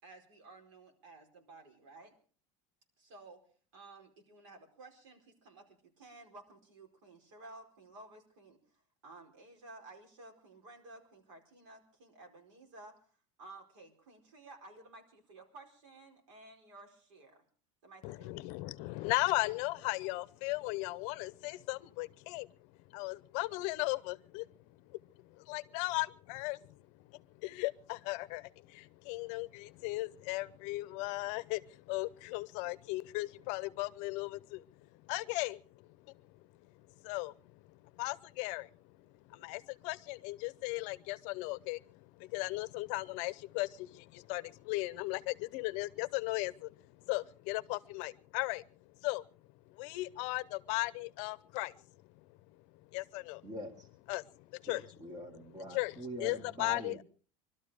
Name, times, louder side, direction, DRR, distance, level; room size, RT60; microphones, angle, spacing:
voice 1, 0.0-2.1 3.0-3.4 3.7-8.6 9.0-12.9 13.4-17.4 17.8-18.3, right 2 dB, 80° right, 3 dB, 4.7 m, -54 dB
voice 2, 18.0-22.6 22.9-24.5 24.9-25.0 25.4-26.6 27.1-34.6 35.0-35.6 37.0-37.3 38.0-38.7 39.3-48.6 49.0-49.2 49.8-51.7 52.9-53.5 54.1-54.9 55.7-57.0, left 21 dB, 50° left, 16 dB, 0.7 m, -37 dB
voice 3, 53.4-53.9 54.7-57.0, equal, 25° right, 6 dB, 2.1 m, -44 dB
22.5 x 12.5 x 5.0 m, 0.43 s
cardioid pair, 170°, 16 cm